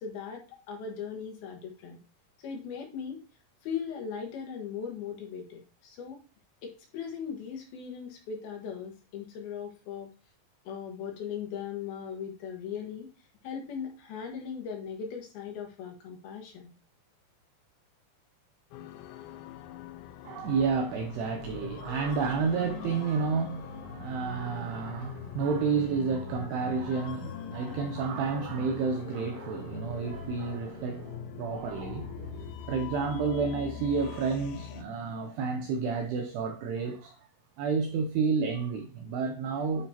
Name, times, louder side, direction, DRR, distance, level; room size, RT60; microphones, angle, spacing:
voice 1, 0.0-2.0 2.4-3.2 3.6-6.2 6.6-10.1 10.7-13.1 13.4-16.7, left 7 dB, 65° left, 2.7 m, -38 dB
sound 1, 18.7-34.8, left 8 dB, 85° left, 3.0 m, -42 dB
voice 2, 20.2-37.3 37.6-39.9, right 5 dB, 80° right, 2.4 m, -30 dB
9.4 x 5.0 x 2.8 m
omnidirectional pair, 5.4 m